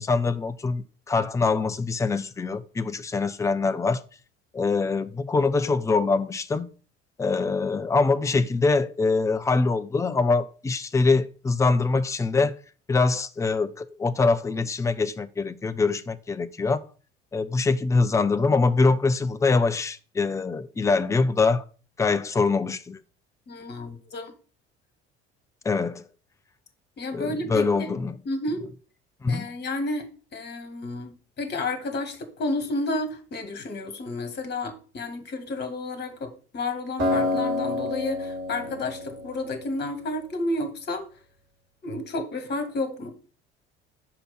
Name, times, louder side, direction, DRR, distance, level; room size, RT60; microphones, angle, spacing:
voice 1, 0.0-4.0 4.5-6.7 7.2-12.6 12.9-16.8 17.3-21.6 22.0-23.0 25.6-26.0 27.1-28.1 29.2-29.5, left 4 dB, 10° left, 0.5 m, -24 dB
voice 2, 23.5-24.3 27.0-27.9 28.2-28.7 29.3-41.0 41.8-43.1, left 2 dB, 30° left, 1.7 m, -31 dB
Acoustic guitar, 37.0-40.2, left 2 dB, 55° right, 3.4 m, -29 dB
5.2 x 4.8 x 5.9 m
figure-of-eight pair, 55°, 32 cm